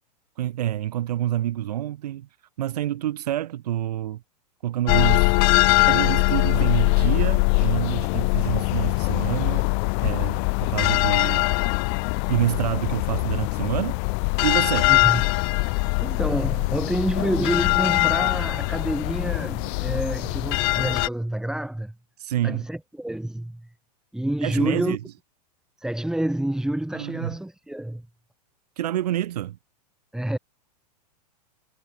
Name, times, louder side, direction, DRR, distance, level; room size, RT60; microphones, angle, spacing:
voice 1, 0.4-2.3 2.6-4.2 4.6-5.3 5.9-9.7 10.0-11.5 12.3-14.0 14.4-14.9 22.2-22.6 24.4-25.0 26.9-27.3 28.8-29.6, right 12 dB, 70° right, 5.1 m, -27 dB
sound 1, 4.9-21.1, left 40 dB or more, 45° left, 0.9 m, -22 dB
voice 2, 14.9-15.2 15.6-21.9 22.4-23.7 24.1-25.0 25.8-28.0 30.1-30.4, right 1 dB, 5° right, 3.6 m, -28 dB
hypercardioid pair, 115°, 21 cm